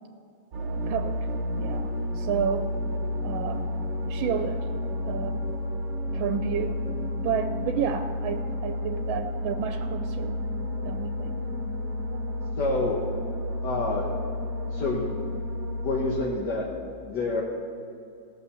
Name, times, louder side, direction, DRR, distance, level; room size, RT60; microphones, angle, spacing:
sound 1, 0.5-16.2, left 1 dB, 40° right, 1.3 m, -31 dB
voice 1, 0.6-1.3 1.6-2.7 3.2-3.7 4.0-4.7 5.0-5.5 6.1-6.8 7.1-10.4 10.7-11.4, right 8 dB, 90° right, 8 dB, 1.4 m, -31 dB
voice 2, 12.6-13.0 13.6-14.1 14.7-15.4 15.8-16.7 17.0-17.4, left 2 dB, 60° left, -2 dB, 1.7 m, -28 dB
16.0 x 6.9 x 6.8 m, 2.6 s
omnidirectional pair, 2.1 m